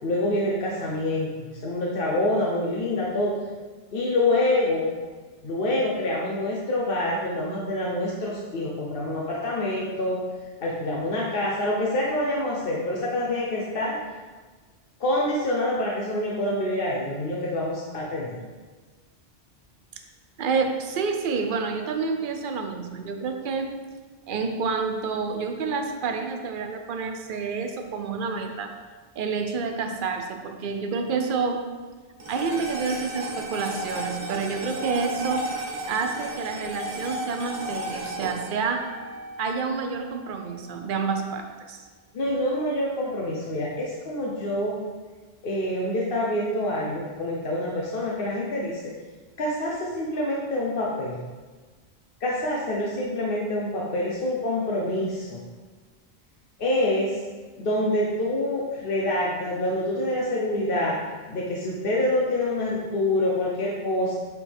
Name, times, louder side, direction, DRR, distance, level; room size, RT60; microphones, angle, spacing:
voice 1, 0.0-1.3 1.6-3.3 3.9-4.9 5.4-10.2 10.6-14.0 15.0-18.4 42.1-44.8 45.4-48.8 49.4-51.2 52.2-55.4 56.6-57.2 57.6-60.9 61.3-64.2, left 1 dB, 55° left, -4 dB, 1.0 m, -26 dB
voice 2, 20.4-23.7 24.3-28.7 29.2-31.7 32.3-35.4 35.9-38.8 39.4-41.8, right 5 dB, 55° right, 5 dB, 0.8 m, -28 dB
sound 1, 32.2-40.7, right 1 dB, 90° right, 1.5 m, -34 dB
8.3 x 4.7 x 3.5 m, 1.4 s
omnidirectional pair, 1.1 m